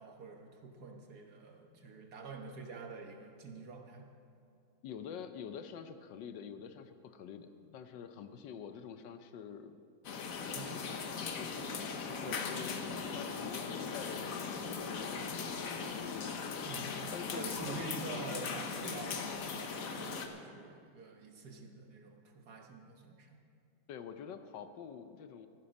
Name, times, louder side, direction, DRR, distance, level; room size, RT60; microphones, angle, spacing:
voice 1, 0.0-4.1 10.5-10.9 12.0-12.6 16.6-23.4, right 4 dB, 60° right, 2 dB, 1.7 m, -47 dB
voice 2, 4.8-9.8 10.4-10.8 11.2-12.8 13.1-16.4 17.1-17.9 23.9-25.5, left 7 dB, 75° left, 9 dB, 1.4 m, -47 dB
sound 1, 10.0-20.3, left 5 dB, 55° left, 1.2 m, -39 dB
14.5 x 11.0 x 5.3 m, 2.4 s
omnidirectional pair, 2.0 m